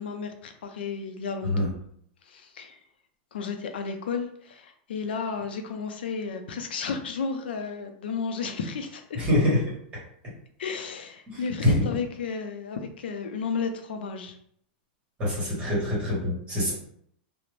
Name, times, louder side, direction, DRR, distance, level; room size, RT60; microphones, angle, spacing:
voice 1, 0.0-1.7 2.3-2.8 3.3-9.2 10.6-14.3, left 5 dB, 90° left, 6 dB, 0.4 m, -33 dB
voice 2, 9.1-9.6 11.3-11.9 15.2-16.7, left 1 dB, 20° right, -6 dB, 1.1 m, -25 dB
2.5 x 2.0 x 3.1 m, 0.66 s
supercardioid pair, 155°, 5 cm